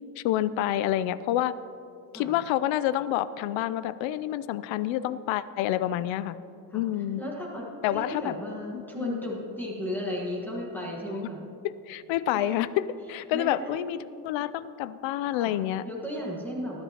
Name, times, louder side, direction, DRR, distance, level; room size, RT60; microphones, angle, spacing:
voice 1, 0.2-1.6 2.1-6.4 6.7-7.2 7.8-8.3 8.7-9.2 11.6-14.0 14.2-15.8, left 12 dB, 90° left, 16 dB, 0.6 m, -28 dB
voice 2, 7.2-11.4 12.3-12.6 13.3-13.8 15.4-15.5 15.8-16.8, left 1 dB, 5° left, -3 dB, 1.4 m, -35 dB
19.5 x 11.5 x 2.9 m, 2.7 s
cardioid pair, 180°, 45 cm